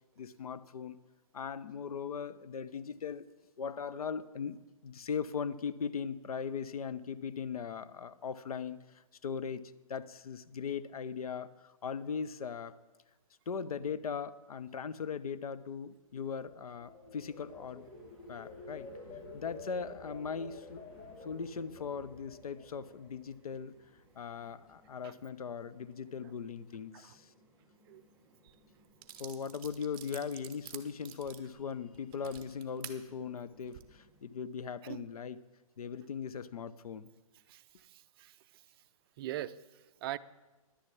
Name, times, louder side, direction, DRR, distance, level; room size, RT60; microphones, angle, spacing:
voice 1, 0.2-1.0 1.3-3.3 3.6-4.6 4.8-12.8 13.5-17.9 18.3-18.9 19.3-20.8 21.2-23.7 24.2-27.3 29.2-35.4 35.8-37.1, left 6 dB, 80° left, 14 dB, 0.7 m, -39 dB
sound 1, 16.3-23.5 23.9-24.2, left 3 dB, 35° left, 3.7 m, -50 dB
sound 2, 17.3-34.4, right 1 dB, 5° right, 1.8 m, -67 dB
sound 3, 28.5-28.6 29.0-33.0 33.6-33.8, right 11 dB, 25° right, 0.9 m, -49 dB
voice 2, 37.5-38.7 39.2-40.2, right 13 dB, 40° right, 12 dB, 0.4 m, -43 dB
11.0 x 6.7 x 8.4 m, 1.1 s
hypercardioid pair, 135°, 19 cm